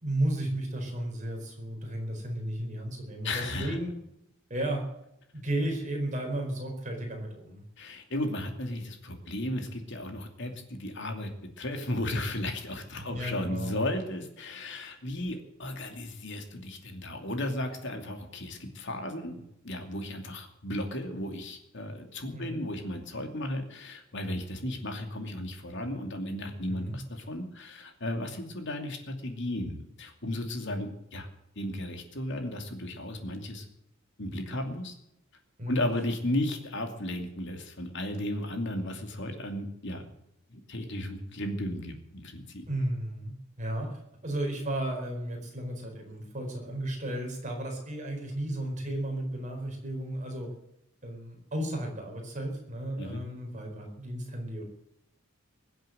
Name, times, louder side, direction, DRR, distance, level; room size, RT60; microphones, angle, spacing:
voice 1, 0.0-3.9 4.5-4.8 5.3-7.6 13.0-13.8 22.3-22.7 26.7-27.0 35.6-35.8 42.7-43.3 43.6-50.5 51.0-54.6, right 1 dB, 35° right, 2 dB, 4.4 m, -34 dB
voice 2, 3.2-3.8 7.8-31.3 31.6-33.7 34.2-34.9 35.7-40.0 40.5-42.6 53.0-53.2, left 1 dB, 55° left, 4 dB, 2.6 m, -35 dB
22.0 x 7.9 x 7.8 m, 0.81 s
head